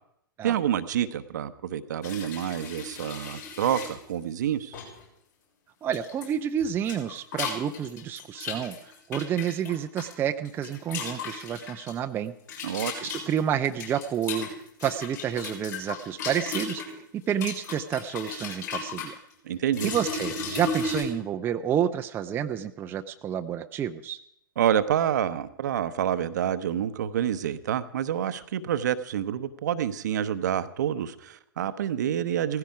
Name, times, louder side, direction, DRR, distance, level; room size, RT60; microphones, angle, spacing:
voice 1, 0.4-4.8 12.6-12.9 19.4-19.9 24.6-32.6, right 10 dB, 55° right, 12 dB, 1.0 m, -28 dB
sound 1, 2.0-3.9 4.7-5.0 5.9-6.3 6.6-10.1 10.4-11.9 12.5-16.9 17.3-19.1 19.7-21.0, left 5 dB, 55° left, 7.3 m, -35 dB
voice 2, 5.8-8.8 9.1-12.3 13.0-14.5 14.8-19.1 19.8-24.2, right 9 dB, 20° right, 6 dB, 0.7 m, -29 dB
17.5 x 15.5 x 4.9 m, 0.74 s
figure-of-eight pair, 110°, 12 cm